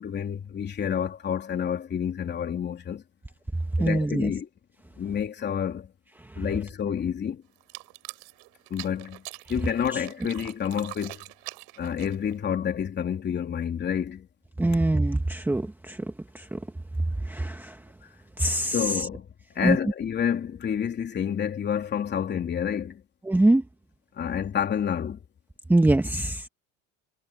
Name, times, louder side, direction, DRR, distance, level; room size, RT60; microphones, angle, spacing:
voice 1, 0.0-3.0 3.8-4.5 5.0-5.9 6.4-7.4 8.7-9.2 9.5-11.2 11.8-14.3 18.7-19.3 19.5-23.0 24.1-25.2, left 8 dB, 30° left, 3.3 m, -29 dB
voice 2, 3.8-4.3 6.3-6.4 9.9-10.1 14.6-16.6 17.2-17.8 18.4-19.1 19.6-19.8 23.2-23.6 25.7-26.5, right 1 dB, 5° right, 1.3 m, -24 dB
sound 1, 7.6-12.4, right 29 dB, 85° right, 6.0 m, -43 dB
cardioid pair, 145°, 34 cm